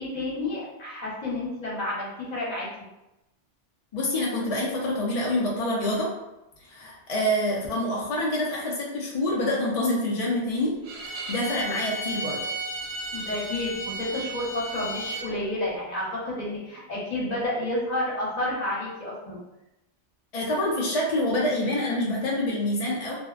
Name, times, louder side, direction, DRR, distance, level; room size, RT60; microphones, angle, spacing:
voice 1, 0.0-2.7 13.1-19.4, left 1 dB, 40° left, -6 dB, 0.8 m, -30 dB
voice 2, 3.9-6.1 6.6-12.5 20.3-23.2, left 1 dB, 65° left, -3 dB, 0.3 m, -27 dB
Bowed string instrument, 10.8-15.3, right 1 dB, 75° right, 0.9 m, -34 dB
2.5 x 2.1 x 2.4 m, 0.94 s
omnidirectional pair, 1.2 m